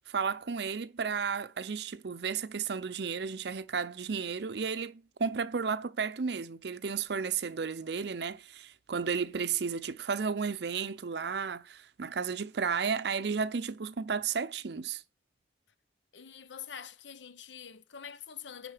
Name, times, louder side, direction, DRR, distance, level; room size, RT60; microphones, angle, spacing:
voice 1, 0.1-15.0, right 6 dB, 65° right, 0.6 m, -33 dB
voice 2, 16.1-18.7, left 8 dB, 85° left, 0.8 m, -45 dB
10.5 x 4.3 x 6.5 m
head